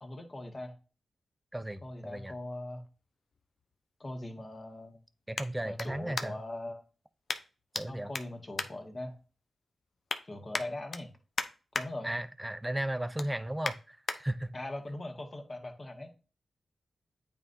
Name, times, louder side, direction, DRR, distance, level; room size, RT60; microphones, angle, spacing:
voice 1, 0.0-0.8 1.8-2.8 4.0-5.0 5.6-6.8 7.9-9.2 10.3-11.1 11.7-12.1 14.5-16.1, left 1 dB, 40° left, 1.7 m, -41 dB
voice 2, 1.5-2.3 5.3-6.4 7.7-8.1 12.0-14.5, right 1 dB, 15° right, 0.6 m, -35 dB
sound 1, 2.5-6.6 7.3-7.8 8.1-9.4 9.8-10.2 10.5-11.9 12.3-12.5 12.9-14.2 14.7-14.8, left 4 dB, 65° left, 0.6 m, -38 dB
8.8 x 3.9 x 2.7 m
cardioid pair, 45°, 0 cm